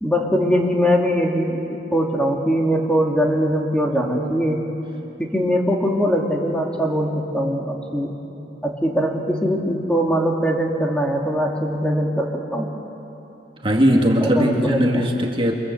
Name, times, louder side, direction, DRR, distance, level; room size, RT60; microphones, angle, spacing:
voice 1, 0.0-4.7 5.2-8.1 8.6-12.7 14.2-15.0, equal, 5° left, -1 dB, 2.5 m, -21 dB
voice 2, 13.6-15.5, equal, 30° right, 0 dB, 2.0 m, -19 dB
28.5 x 26.0 x 7.9 m, 3.0 s
head